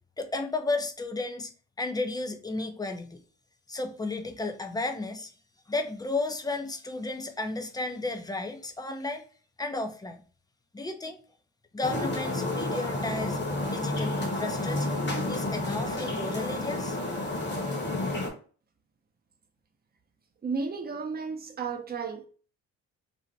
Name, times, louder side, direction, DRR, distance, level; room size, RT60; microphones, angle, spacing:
voice 1, 0.2-1.5 1.8-3.2 3.7-5.3 5.7-9.2 9.6-10.2 10.7-11.2 11.7-15.0 15.3-17.0, left 2 dB, 15° left, 0.4 m, -33 dB
sound 1, 11.8-18.3, left 2 dB, 35° left, 1.0 m, -30 dB
voice 2, 20.4-22.3, right 5 dB, 30° right, 0.6 m, -33 dB
2.7 x 2.1 x 3.9 m
cardioid pair, 90°, 30 cm